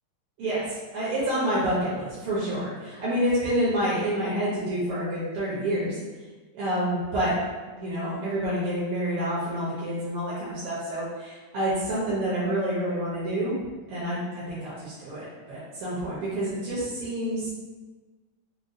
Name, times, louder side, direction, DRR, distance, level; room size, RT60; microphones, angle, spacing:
voice 1, 0.4-6.0 6.5-7.3 7.8-13.6 13.9-17.5, right 1 dB, 80° right, -9 dB, 1.8 m, -28 dB
5.2 x 2.2 x 2.5 m, 1.3 s
omnidirectional pair, 2.4 m